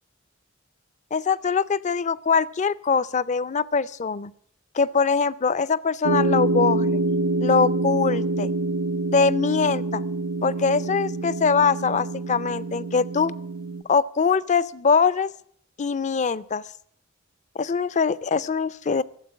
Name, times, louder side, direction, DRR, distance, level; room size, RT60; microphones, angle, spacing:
voice 1, 1.1-4.3 4.7-7.0 7.4-8.5 9.1-10.0 10.4-13.3 13.9-15.3 15.8-16.6 17.6-19.0, left 5 dB, 35° left, 19 dB, 0.5 m, -22 dB
sound 1, 6.0-13.8, right 2 dB, 85° right, 0.7 m, -26 dB
13.5 x 7.9 x 9.5 m, 0.62 s
head